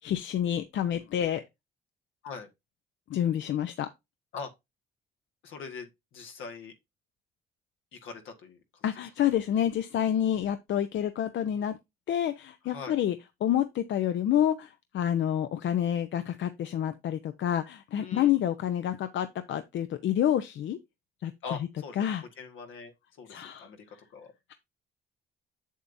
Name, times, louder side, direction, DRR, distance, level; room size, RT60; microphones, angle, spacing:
voice 1, 0.0-1.4 3.1-3.9 8.8-11.8 12.1-13.2 13.4-20.8 21.2-21.3 22.0-22.2 23.3-23.7, left 10 dB, 70° left, 0.7 m, -28 dB
voice 2, 5.4-6.7 7.9-8.9 12.6-12.9 18.0-18.4 21.4-22.0 22.4-24.3, left 5 dB, 85° left, 1.6 m, -42 dB
7.3 x 7.2 x 2.6 m
cardioid pair, 90°, 20 cm